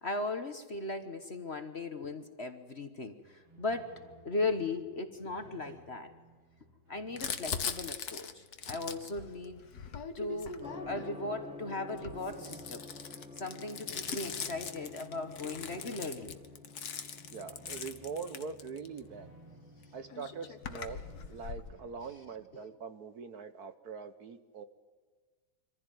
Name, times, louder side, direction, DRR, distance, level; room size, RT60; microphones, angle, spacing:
voice 1, 0.0-3.9 4.2-6.1 6.9-9.6 10.2-12.9 13.4-16.4 22.5-22.6, left 3 dB, 40° left, 8 dB, 1.3 m, -37 dB
sound 1, 3.2-22.4, right 1 dB, 80° right, 7.7 m, -59 dB
Crumpling crinkling, 7.2-11.2 11.9-19.0 19.8-19.9 20.1-21.7, left 6 dB, 55° left, 1.7 m, -41 dB
Gong, 10.6-21.4, left 2 dB, 5° right, 1.7 m, -51 dB
voice 2, 17.3-19.3 19.9-21.0 21.3-24.7, right 5 dB, 55° right, 10 dB, 1.4 m, -43 dB
25.0 x 15.5 x 9.1 m, 1.5 s
omnidirectional pair, 2.1 m